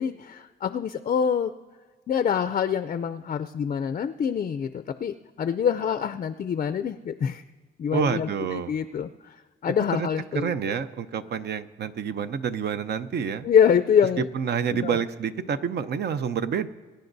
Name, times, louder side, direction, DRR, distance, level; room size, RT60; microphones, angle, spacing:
voice 1, 0.0-1.5 2.1-7.4 7.8-9.3 9.6-10.5 13.4-14.3 14.7-15.0, left 7 dB, 40° left, 9 dB, 0.4 m, -25 dB
voice 2, 7.9-8.7 10.0-10.1 10.3-13.5 14.3-16.7, right 7 dB, 55° right, 12 dB, 0.7 m, -28 dB
23.5 x 10.0 x 2.7 m, 1.5 s
cardioid pair, 90°, 20 cm